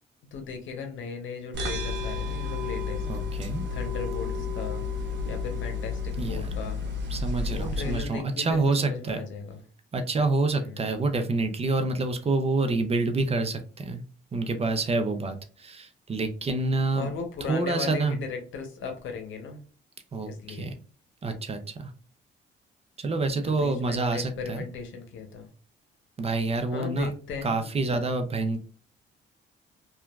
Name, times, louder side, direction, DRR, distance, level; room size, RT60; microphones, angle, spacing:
voice 1, 0.3-3.0 3.7-6.8 7.5-9.6 10.5-10.9 16.9-19.6 20.2-20.7 23.4-25.5 26.7-27.6, left 5 dB, 80° left, 5 dB, 0.8 m, -37 dB
sound 1, 1.5-8.0, left 4 dB, 65° right, 0.9 m, -31 dB
voice 2, 3.1-3.6 6.2-6.5 7.1-9.2 9.9-14.0 14.3-17.1 17.5-18.2 20.1-20.8 21.2-21.9 23.0-24.6 26.2-27.1 27.4-28.6, right 3 dB, 30° right, 7 dB, 0.5 m, -27 dB
2.9 x 2.3 x 2.3 m, 0.39 s
cardioid pair, 90°, 20 cm